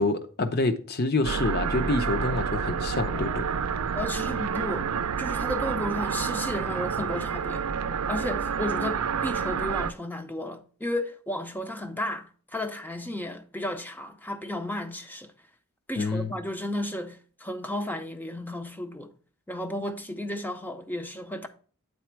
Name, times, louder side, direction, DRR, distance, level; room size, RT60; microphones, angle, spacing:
voice 1, 0.0-3.5 16.0-16.3, left 2 dB, 45° left, 0.7 m, -27 dB
sound 1, 1.2-9.9, right 6 dB, 80° right, 0.5 m, -29 dB
voice 2, 4.0-4.9 5.2-7.7 8.1-15.3 15.9-19.1 19.5-21.5, left 1 dB, 10° left, 0.5 m, -33 dB
8.4 x 4.2 x 4.5 m
head